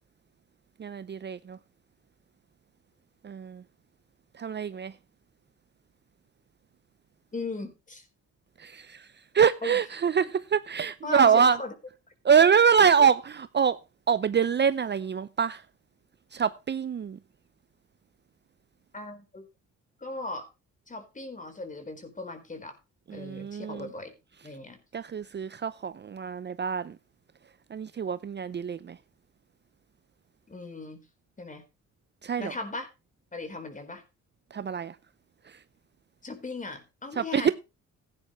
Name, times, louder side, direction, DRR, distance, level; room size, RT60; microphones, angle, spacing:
voice 1, 0.8-1.6 3.2-3.6 4.4-4.9 8.6-9.1 9.3-11.6 12.2-13.8 14.1-15.6 16.3-17.2 23.1-23.9 24.9-27.0 27.7-29.0 32.2-32.5 34.5-35.0 35.5-35.6 37.2-37.5, right 7 dB, 35° right, 0.7 m, -25 dB
voice 2, 7.3-8.1 9.6-9.8 11.0-11.7 18.9-19.5 20.0-20.5 20.9-22.7 23.1-24.1 24.4-24.8 30.5-31.0 31.4-31.6 32.4-32.9 33.3-34.0 36.2-37.5, left 2 dB, 25° left, 4.3 m, -38 dB
16.0 x 9.9 x 3.2 m
cardioid pair, 90°, 30 cm